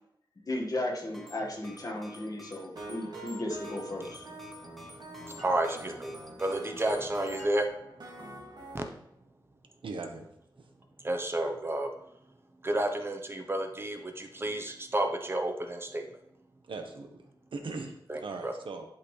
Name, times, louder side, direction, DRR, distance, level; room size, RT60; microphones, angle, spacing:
voice 1, 0.5-4.2, left 1 dB, 45° left, -1 dB, 1.7 m, -35 dB
sound 1, 1.0-7.5, left 1 dB, ahead, 1.2 m, -51 dB
sound 2, 2.8-8.8, right 2 dB, 55° right, 2.1 m, -45 dB
voice 2, 5.4-7.7 8.7-8.8 11.0-11.9 12.6-16.1 18.1-18.5, right 1 dB, 30° right, 4 dB, 0.9 m, -31 dB
voice 3, 9.8-10.3 10.6-10.7 16.6-17.2 17.5-18.9, right 3 dB, 85° right, 4 dB, 1.1 m, -39 dB
11.5 x 5.7 x 3.3 m, 0.80 s
wide cardioid pair, 125°, 8 cm